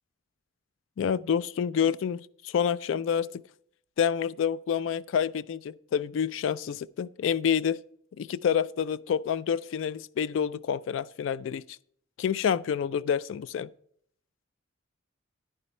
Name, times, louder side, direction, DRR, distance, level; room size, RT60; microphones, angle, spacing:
voice 1, 1.0-3.3 4.0-7.8 8.2-11.6 12.2-13.7, left 7 dB, 65° left, 0.3 m, -28 dB
10.0 x 9.6 x 3.2 m
head